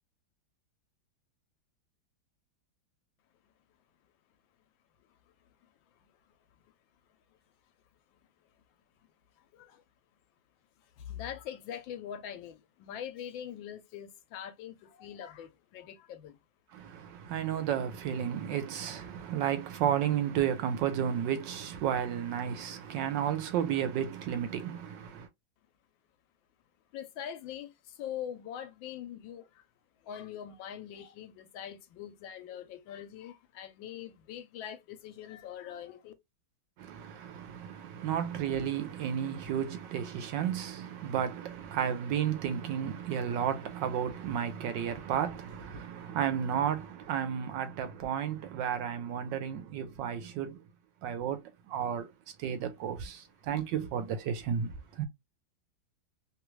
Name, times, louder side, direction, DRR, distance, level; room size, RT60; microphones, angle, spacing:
voice 1, 11.0-16.4 26.9-29.6 30.0-36.1, left 9 dB, 80° left, 1.4 m, -43 dB
voice 2, 16.7-25.3 36.8-50.6 51.0-52.1 52.4-55.1, right 9 dB, 75° right, 1.2 m, -32 dB
3.2 x 2.4 x 3.0 m
omnidirectional pair, 2.1 m